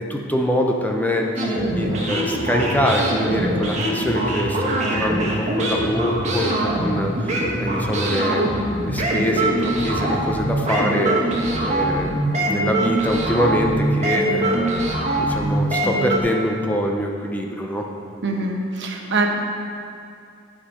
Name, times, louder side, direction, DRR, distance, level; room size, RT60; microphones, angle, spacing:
voice 1, 0.0-8.5 8.8-11.2 11.6-14.9 15.2-17.9, equal, 10° left, 0 dB, 0.6 m, -24 dB
sound 1, 1.4-16.2, right 1 dB, 35° right, 1.3 m, -23 dB
voice 2, 18.2-19.4, right 2 dB, 60° right, 1 dB, 1.1 m, -23 dB
11.5 x 5.0 x 5.6 m, 2.5 s
head